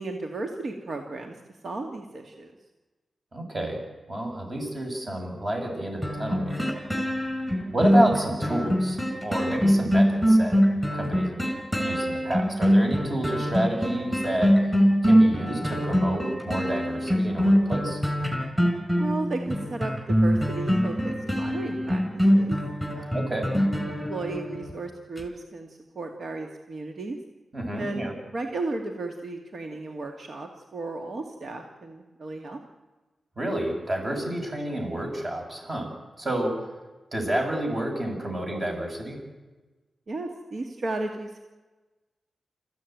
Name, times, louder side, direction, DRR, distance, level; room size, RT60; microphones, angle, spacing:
voice 1, 0.0-1.3 1.6-2.5 19.0-19.9 20.2-22.0 22.3-22.6 22.9-23.2 23.9-25.7 26.0-27.2 27.7-32.6 40.1-41.4, right 2 dB, 55° right, 4 dB, 2.2 m, -34 dB
voice 2, 3.3-3.8 4.1-6.6 7.7-10.6 10.9-11.4 11.8-14.6 15.0-18.0 23.1-23.5 27.5-28.1 33.4-36.6 37.1-39.2, right 1 dB, 35° right, 2 dB, 7.0 m, -29 dB
sound 1, 6.0-24.7 25.2-25.3, equal, 10° right, 5.1 m, -23 dB
27.5 x 15.5 x 9.3 m, 1.2 s
wide cardioid pair, 115°, 0 cm